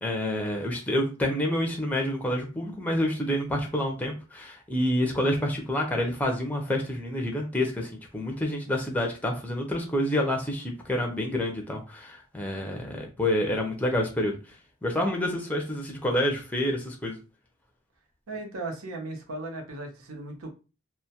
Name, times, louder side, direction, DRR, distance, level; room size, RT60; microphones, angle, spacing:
voice 1, 0.0-14.4 14.8-17.2, left 1 dB, 10° left, 1 dB, 0.5 m, -28 dB
voice 2, 18.3-20.5, right 2 dB, 85° right, 2 dB, 0.7 m, -36 dB
2.2 x 2.1 x 2.7 m, 0.32 s
head